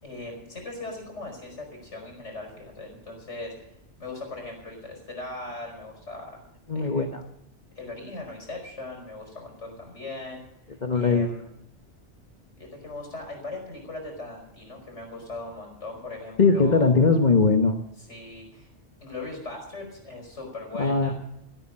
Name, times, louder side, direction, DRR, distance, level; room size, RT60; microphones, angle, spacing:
voice 1, 0.0-3.7 4.0-6.4 6.7-7.0 7.8-10.4 10.9-11.5 12.6-16.9 18.1-18.7 19.0-21.1, left 2 dB, 75° left, 2 dB, 5.5 m, -39 dB
voice 2, 6.7-7.2 10.8-11.3 16.4-17.8 20.8-21.1, left 4 dB, 40° left, 5 dB, 1.2 m, -20 dB
16.5 x 8.8 x 8.7 m, 0.77 s
omnidirectional pair, 1.2 m